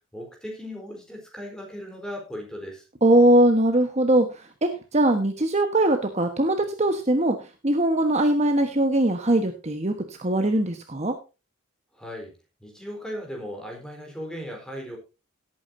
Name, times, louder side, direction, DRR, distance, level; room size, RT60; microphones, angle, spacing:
voice 1, 0.1-2.9 11.9-12.3 12.6-15.0, equal, 5° left, 1 dB, 4.0 m, -37 dB
voice 2, 3.0-4.3 4.6-7.4 7.6-11.1, right 1 dB, 35° right, 6 dB, 1.2 m, -21 dB
18.0 x 8.8 x 2.7 m, 0.29 s
head